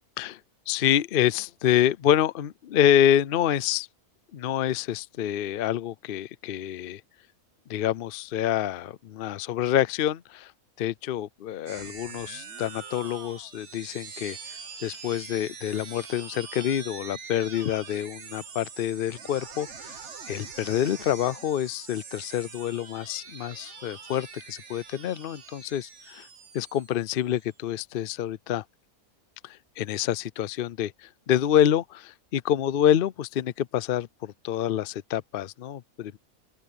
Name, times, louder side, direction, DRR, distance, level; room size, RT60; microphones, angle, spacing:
voice 1, 0.7-3.9 4.3-7.0 7.7-10.5 10.8-14.4 14.8-20.0 20.3-26.3 26.5-28.6 29.4-36.2, left 10 dB, 60° left, 0.5 m, -27 dB
sound 1, 11.7-27.5, right 6 dB, 50° right, 1.6 m, -44 dB
open air
omnidirectional pair, 1.6 m